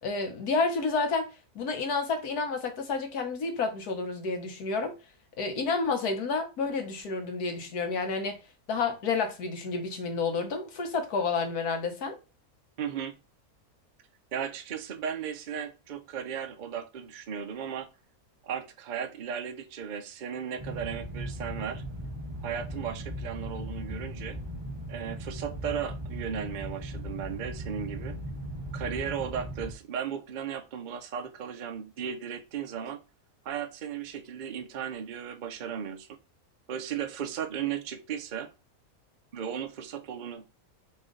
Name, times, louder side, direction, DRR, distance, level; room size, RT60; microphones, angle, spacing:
voice 1, 0.0-4.9 5.4-8.4 8.7-12.2, left 4 dB, 80° left, 1.6 m, -30 dB
voice 2, 12.8-13.2 14.3-17.9 18.4-21.8 22.4-24.4 24.9-28.1 28.7-33.0 33.4-36.2 36.7-38.5 39.3-40.5, right 8 dB, 45° right, 0.6 m, -36 dB
sound 1, 20.6-29.7, equal, 20° right, 1.0 m, -38 dB
4.4 x 3.0 x 3.8 m
omnidirectional pair, 1.6 m